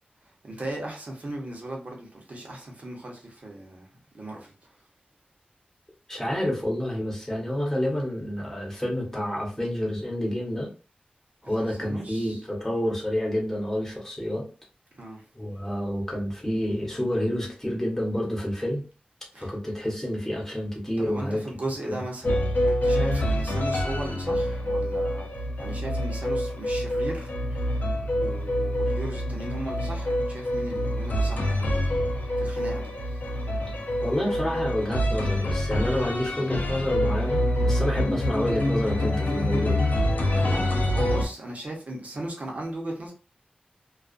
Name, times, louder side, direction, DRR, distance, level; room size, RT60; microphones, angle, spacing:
voice 1, 0.2-4.5 11.6-12.4 14.9-15.2 19.3-19.5 21.0-25.3 25.6-27.9 28.1-32.0 32.4-33.2 40.4-43.1, right 1 dB, 55° right, 0.9 m, -37 dB
voice 2, 6.1-10.7 11.4-14.5 15.3-18.8 19.4-21.4 34.0-39.8, equal, 15° left, 1.1 m, -28 dB
sound 1, 22.2-41.2, left 1 dB, 65° left, 0.6 m, -26 dB
2.4 x 2.3 x 2.5 m
wide cardioid pair, 80°, 3 cm